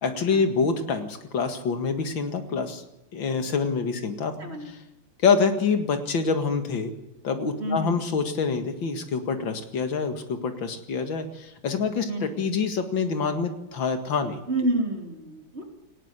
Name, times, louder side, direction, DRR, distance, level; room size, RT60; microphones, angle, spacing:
voice 1, 0.0-2.8 3.1-4.3 4.7-4.8 5.2-6.9 7.2-14.4, left 5 dB, 75° left, 7 dB, 2.6 m, -26 dB
voice 2, 4.4-4.7 7.6-7.9 12.1-12.2 14.5-15.6, right 1 dB, 30° right, 2 dB, 3.6 m, -28 dB
19.0 x 17.5 x 8.2 m, 0.90 s
omnidirectional pair, 2.1 m